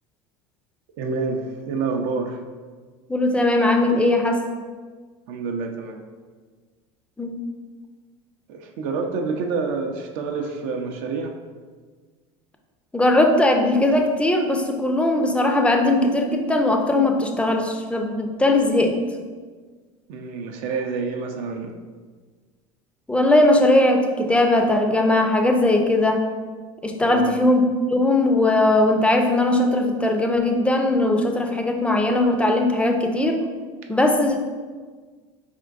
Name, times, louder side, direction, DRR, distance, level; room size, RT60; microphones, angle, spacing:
voice 1, 1.0-2.4 5.3-6.0 8.5-11.3 20.1-21.7 27.0-27.4, right 4 dB, 60° right, 3 dB, 0.5 m, -28 dB
voice 2, 3.1-4.4 7.2-7.4 12.9-19.0 23.1-26.2 26.8-33.4 33.9-34.4, left 1 dB, 5° left, 4 dB, 0.5 m, -19 dB
4.3 x 3.6 x 2.5 m, 1.5 s
hypercardioid pair, 85°, 16 cm